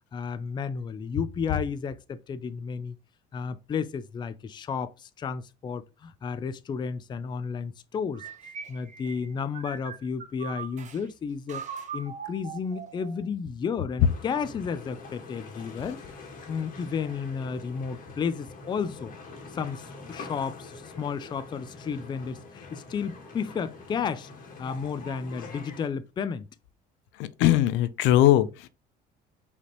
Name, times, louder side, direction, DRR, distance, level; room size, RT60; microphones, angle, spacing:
voice 1, 0.1-2.9 3.3-8.2 8.7-11.6 11.9-16.0 16.5-19.1 19.5-24.3 24.6-26.5, left 6 dB, 25° left, 0.4 m, -32 dB
sound 1, 8.1-11.0 11.5-13.3, right 7 dB, 40° right, 0.9 m, -40 dB
sound 2, 14.0-25.9, left 3 dB, 45° left, 1.6 m, -44 dB
voice 2, 27.4-28.7, left 13 dB, 75° left, 0.5 m, -20 dB
5.0 x 3.3 x 2.9 m
cardioid pair, 120°, 19 cm